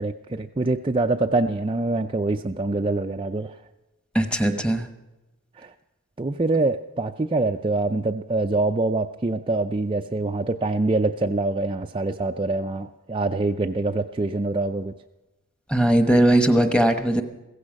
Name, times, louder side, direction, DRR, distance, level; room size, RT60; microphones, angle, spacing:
voice 1, 0.0-3.5 6.2-14.9, right 2 dB, 25° right, 4 dB, 0.4 m, -25 dB
voice 2, 4.1-4.9 15.7-17.2, right 1 dB, 5° left, 7 dB, 1.1 m, -19 dB
16.0 x 15.0 x 5.3 m, 1.0 s
head